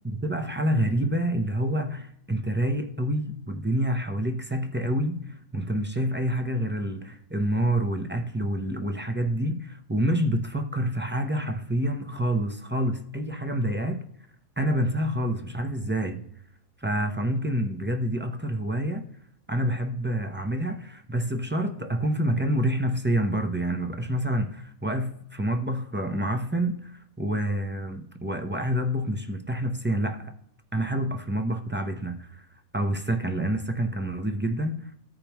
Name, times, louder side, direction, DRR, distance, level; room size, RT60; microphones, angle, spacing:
voice 1, 0.0-14.0 14.6-16.2 16.8-19.1 19.5-30.3 30.7-32.4 32.7-34.9, right 1 dB, 15° right, 0.4 m, -27 dB
15.0 x 5.1 x 3.0 m
omnidirectional pair, 1.5 m